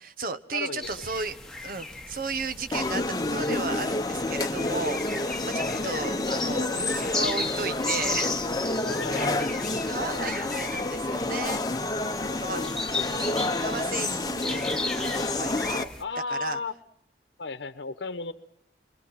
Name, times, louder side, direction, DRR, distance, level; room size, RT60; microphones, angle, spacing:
voice 1, 0.0-1.4 1.6-8.9 9.2-9.5 9.9-11.6 12.4-12.6 13.4-15.9 16.3-16.6, right 3 dB, 50° right, 11 dB, 1.1 m, -34 dB
voice 2, 0.5-0.9 4.6-4.8 5.6-6.0 8.8-9.3 12.2-12.8 13.1-13.3 16.0-16.7 17.4-18.3, left 3 dB, 90° left, 11 dB, 1.0 m, -35 dB
sound 1, 0.8-16.0, left 3 dB, 5° left, 1.4 m, -35 dB
sound 2, 2.7-15.8, left 2 dB, 20° left, 0.9 m, -29 dB
28.5 x 23.0 x 5.8 m, 0.76 s
head